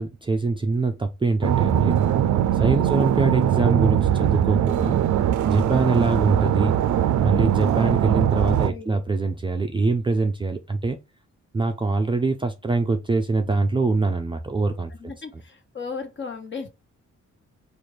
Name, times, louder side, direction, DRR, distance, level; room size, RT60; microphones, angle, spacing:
voice 1, 0.0-2.0 2.5-5.0 5.5-6.7 7.2-11.0 11.5-14.9, right 3 dB, 15° right, 0.4 m, -24 dB
sound 1, 1.4-8.7, right 10 dB, 80° right, 0.5 m, -21 dB
voice 2, 8.5-9.0 15.0-16.7, left 5 dB, 40° left, 1.1 m, -36 dB
4.3 x 2.6 x 4.8 m
wide cardioid pair, 135°, 29 cm